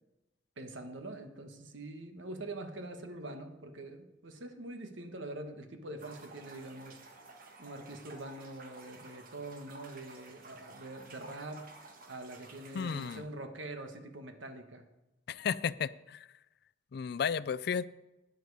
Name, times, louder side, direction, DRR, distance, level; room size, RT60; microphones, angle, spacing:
voice 1, 0.6-7.3 7.6-11.7 12.0-14.8, right 2 dB, 75° right, 1.4 m, -44 dB
sound 1, 6.0-13.2, right 3 dB, 45° right, 1.4 m, -53 dB
voice 2, 12.7-13.2 15.3-16.3 16.9-17.8, left 7 dB, 55° left, 0.3 m, -33 dB
12.0 x 9.4 x 4.8 m
head